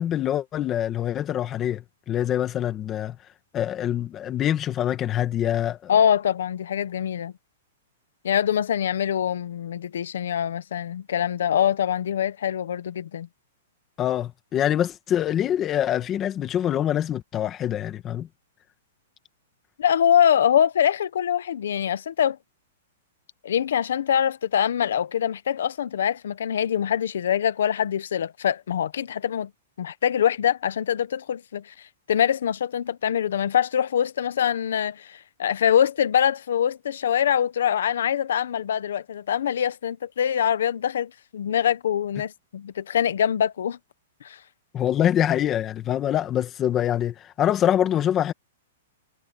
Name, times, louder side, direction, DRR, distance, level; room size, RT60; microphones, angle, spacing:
voice 1, 0.0-3.2 3.5-5.9 14.0-18.3 44.7-48.3, left 10 dB, 15° left, 1.7 m, -25 dB
voice 2, 5.9-7.3 8.2-13.3 19.8-22.4 23.4-29.5 29.8-31.7 32.1-43.8 44.2-44.4, left 9 dB, 70° left, 1.1 m, -24 dB
hypercardioid pair, 175°, 0 cm